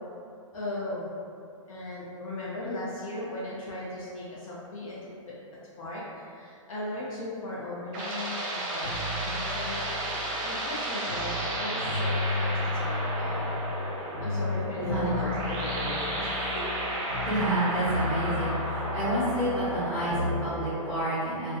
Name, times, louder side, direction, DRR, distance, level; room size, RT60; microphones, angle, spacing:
voice 1, 0.5-1.1 1.7-5.0 5.3-5.4 5.8-10.1 10.4-13.6 14.2-16.6 18.4-18.5, left 1 dB, 80° left, -7 dB, 0.6 m, -37 dB
sound 1, 7.4-21.1, right 1 dB, 25° right, 0.7 m, -33 dB
sound 2, 8.8-11.5 11.8-13.9 14.1-17.6 17.8-20.4, left 3 dB, 45° left, 0.9 m, -34 dB
voice 2, 14.8-15.2 17.2-21.6, right 1 dB, 10° left, -16 dB, 0.7 m, -29 dB
2.5 x 2.2 x 2.3 m, 2.4 s
hypercardioid pair, 140°, 18 cm